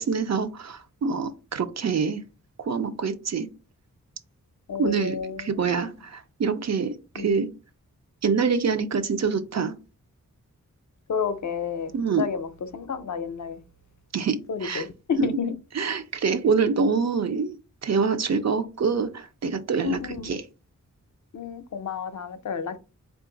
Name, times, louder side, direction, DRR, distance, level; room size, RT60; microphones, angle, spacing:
voice 1, 0.0-2.2 2.6-3.5 4.8-7.5 8.2-9.7 11.9-12.2 14.1-14.8 15.2-15.3 15.7-17.5 17.8-20.4, right 5 dB, 55° right, 0.5 m, -25 dB
voice 2, 4.7-5.8 7.2-7.3 11.1-11.9 12.2-13.6 14.5-15.5 19.8-20.3 21.3-22.8, left 6 dB, 60° left, 0.5 m, -31 dB
3.8 x 2.4 x 3.7 m
wide cardioid pair, 105°, 32 cm